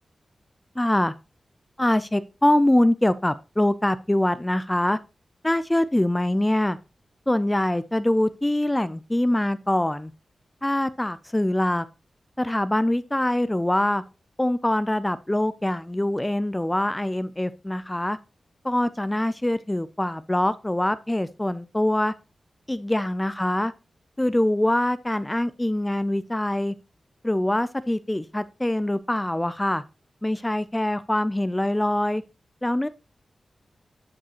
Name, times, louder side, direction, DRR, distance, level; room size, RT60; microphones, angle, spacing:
voice 1, 0.8-1.1 1.8-5.0 5.4-6.8 7.3-10.1 10.6-11.9 12.4-14.0 14.4-18.2 18.6-22.1 22.7-23.7 24.2-26.7 27.2-29.8 30.2-32.2 32.6-32.9, left 1 dB, 10° left, 0.3 m, -24 dB
12.0 x 4.9 x 2.9 m
wide cardioid pair, 115°, 0 cm